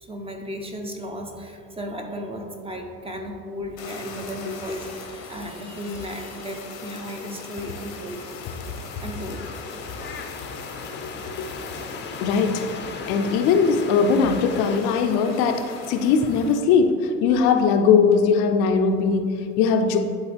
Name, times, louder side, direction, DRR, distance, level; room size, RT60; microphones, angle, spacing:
voice 1, 0.0-8.3 9.0-9.5 10.4-10.5, equal, 15° right, 3 dB, 0.9 m, -35 dB
Fire, 3.8-16.6, left 4 dB, 85° left, 1.2 m, -40 dB
sound 1, 6.9-14.8, left 4 dB, 25° left, 0.7 m, -37 dB
voice 2, 12.2-12.7 13.1-20.0, left 5 dB, 65° left, 7 dB, 0.8 m, -20 dB
10.5 x 3.8 x 3.5 m, 2.4 s
hypercardioid pair, 85°, 40 cm